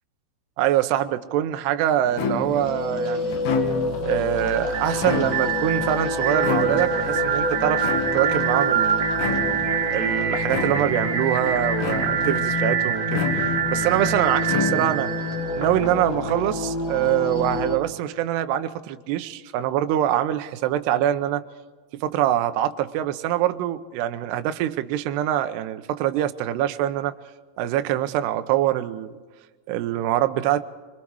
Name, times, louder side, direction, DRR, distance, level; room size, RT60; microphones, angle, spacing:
voice 1, 0.6-3.4 4.0-7.9 8.1-9.1 9.9-15.1 15.6-21.4 21.9-27.1 27.6-29.1 29.7-30.6, right 12 dB, 80° right, 8 dB, 2.5 m, -24 dB
sound 1, 2.1-17.8, left 2 dB, 55° left, 3.3 m, -29 dB
sound 2, 2.2-2.7 3.3-4.1 4.9-5.7 6.4-7.1 7.8-8.5 9.2-9.7 10.5-11.1 11.8-12.4 13.1-13.8 14.4-15.2, left 5 dB, 85° left, 4.6 m, -28 dB
sound 3, 4.5-16.3, right 8 dB, 40° right, 4.0 m, -26 dB
25.0 x 24.0 x 4.7 m, 1.4 s
omnidirectional pair, 5.8 m